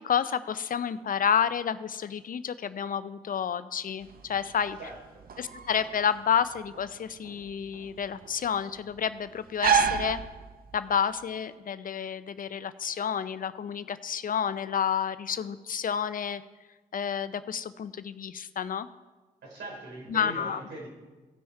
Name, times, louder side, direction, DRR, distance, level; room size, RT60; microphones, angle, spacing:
voice 1, 0.0-4.8 5.4-10.2 10.7-16.4 16.9-18.9 20.1-20.6, left 8 dB, 45° left, 14 dB, 0.5 m, -30 dB
sound 1, 4.0-11.0, right 7 dB, 50° right, 0.9 m, -31 dB
voice 2, 4.8-5.2 19.4-20.9, right 1 dB, 70° right, -1 dB, 3.6 m, -41 dB
16.5 x 6.1 x 4.6 m, 1.3 s
hypercardioid pair, 45°, 19 cm